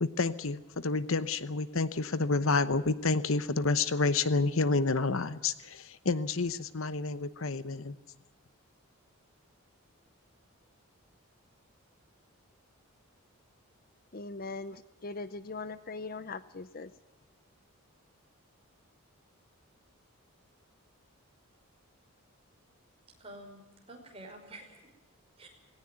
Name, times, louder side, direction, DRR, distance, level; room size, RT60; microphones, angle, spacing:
voice 1, 0.0-8.0, left 3 dB, 65° left, 14 dB, 1.0 m, -29 dB
voice 2, 14.1-16.9, left 3 dB, 40° left, 14 dB, 0.7 m, -40 dB
voice 3, 23.2-24.9 25.4-25.5, right 1 dB, 25° right, 2 dB, 5.2 m, -49 dB
19.5 x 17.5 x 9.3 m, 1.1 s
head